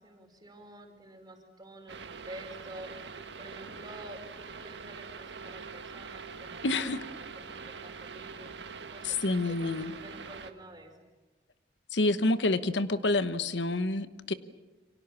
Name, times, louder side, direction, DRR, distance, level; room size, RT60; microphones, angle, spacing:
voice 1, 0.0-2.9 3.4-4.2 4.6-7.0 7.3-8.5 8.8-10.9, right 1 dB, 25° right, 3 dB, 5.0 m, -49 dB
sound 1, 1.9-10.5, right 5 dB, 75° right, 1.8 m, -44 dB
voice 2, 6.6-7.0 9.0-9.9 11.9-14.3, left 2 dB, 80° left, 12 dB, 1.1 m, -28 dB
28.5 x 25.0 x 7.2 m, 1.2 s
head